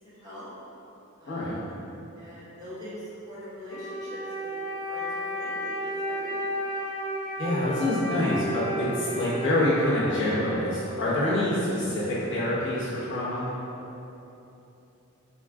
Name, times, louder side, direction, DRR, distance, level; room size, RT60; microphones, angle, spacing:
voice 1, 0.0-0.5 1.2-1.5 2.1-4.5 4.9-6.6, equal, 20° right, -13 dB, 1.2 m, -43 dB
voice 2, 1.3-1.6 7.4-13.5, left 1 dB, 60° left, -9 dB, 0.9 m, -26 dB
Wind instrument woodwind instrument, 3.6-11.2, right 1 dB, 35° left, 1.0 m, -33 dB
3.4 x 2.3 x 3.5 m, 3.0 s
head